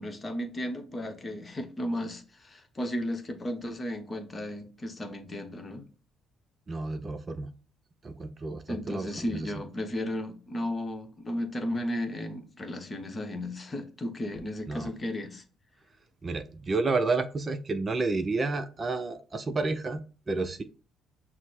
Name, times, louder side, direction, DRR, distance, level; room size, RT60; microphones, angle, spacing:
voice 1, 0.0-5.8 8.7-15.4, left 1 dB, 30° left, 1.0 m, -34 dB
voice 2, 6.7-7.5 8.0-9.5 14.7-14.9 16.2-20.6, right 3 dB, 35° right, 0.5 m, -31 dB
6.1 x 2.1 x 4.3 m
supercardioid pair, 75°, 0 cm